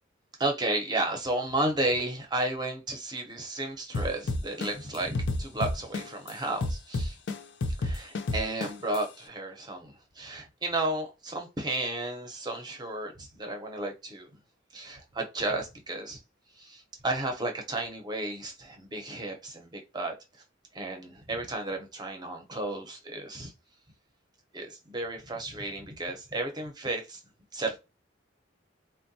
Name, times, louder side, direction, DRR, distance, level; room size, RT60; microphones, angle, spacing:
voice 1, 0.4-7.2 7.8-14.3 14.7-16.2 16.6-20.1 20.7-23.5 24.5-27.2 27.5-27.8, right 2 dB, 20° right, 0.7 m, -33 dB
sound 1, 3.9-6.3 6.6-9.0, left 2 dB, 65° left, 0.5 m, -29 dB
3.6 x 2.2 x 2.7 m
head